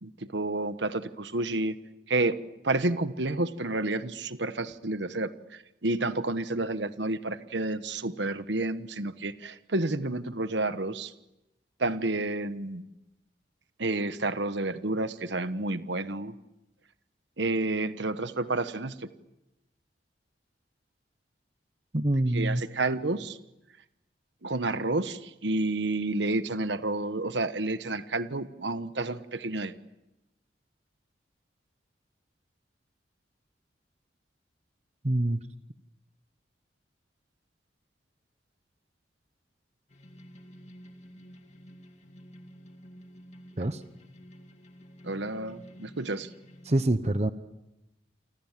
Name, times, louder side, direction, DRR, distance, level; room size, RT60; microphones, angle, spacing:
voice 1, 0.0-1.7 2.1-2.4 2.6-11.1 11.8-12.9 13.8-16.3 17.4-19.1 22.3-23.4 24.4-29.7 45.0-46.3, right 2 dB, 70° right, 11 dB, 1.3 m, -30 dB
voice 2, 21.9-22.6 35.0-35.4 43.6-43.8 46.6-47.3, right 1 dB, 35° right, 11 dB, 1.0 m, -25 dB
sound 1, 39.9-46.8, equal, 40° left, 2.3 m, -50 dB
29.5 x 25.5 x 7.5 m, 0.92 s
head